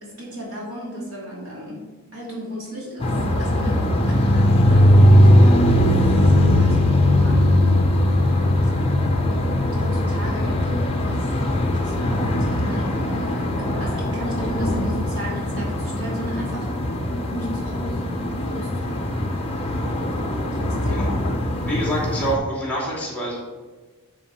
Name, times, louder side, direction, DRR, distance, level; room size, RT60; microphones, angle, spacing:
voice 1, 0.0-7.5 8.4-8.7 9.2-11.3 11.6-17.0 17.3-18.1 18.4-19.3 20.5-21.2, equal, 65° right, -4 dB, 2.7 m, -35 dB
sound 1, 3.0-22.3, left 1 dB, 25° left, 0.9 m, -19 dB
voice 2, 21.6-23.4, right 1 dB, 5° left, -5 dB, 2.8 m, -26 dB
9.6 x 4.9 x 4.3 m, 1.3 s
head